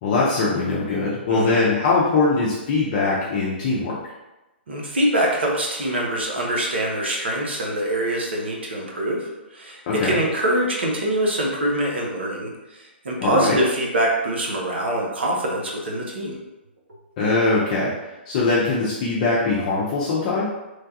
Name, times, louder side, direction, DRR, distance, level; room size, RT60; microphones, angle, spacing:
voice 1, 0.0-4.0 9.9-10.2 13.2-13.6 17.2-20.5, left 3 dB, 40° left, -6 dB, 0.5 m, -21 dB
voice 2, 1.3-1.6 4.7-16.4, right 1 dB, 70° right, -1 dB, 0.7 m, -24 dB
3.1 x 2.2 x 2.7 m, 1.0 s
figure-of-eight pair, 120°, 6 cm